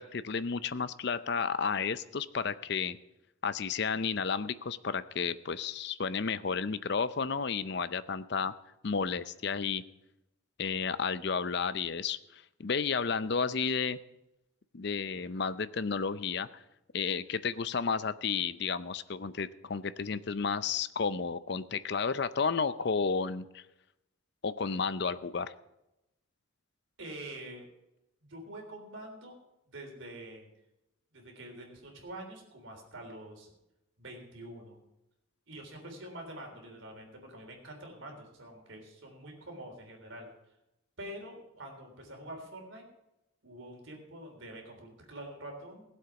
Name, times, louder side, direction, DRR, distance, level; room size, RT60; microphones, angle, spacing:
voice 1, 0.0-3.0 3.4-8.5 8.8-9.8 10.6-14.0 14.7-16.5 16.9-23.6 24.4-25.5, left 5 dB, 55° left, 15 dB, 0.5 m, -32 dB
voice 2, 27.0-27.7 28.2-29.4 29.7-30.5 31.1-33.5 34.0-34.8 35.5-40.3 41.0-42.9 43.4-45.8, right 1 dB, 70° right, 2 dB, 3.5 m, -46 dB
17.5 x 7.9 x 5.9 m, 0.91 s
head